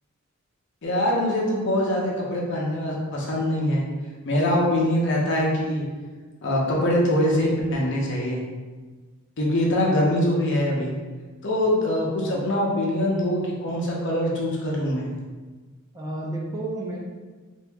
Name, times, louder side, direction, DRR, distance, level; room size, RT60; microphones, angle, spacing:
voice 1, 0.8-3.9 4.2-5.9 6.4-8.4 9.4-10.9 11.4-15.1, left 1 dB, 55° left, -3 dB, 0.7 m, -23 dB
voice 2, 15.9-17.0, right 1 dB, 15° right, -3 dB, 0.4 m, -31 dB
2.8 x 2.6 x 3.4 m, 1.4 s
head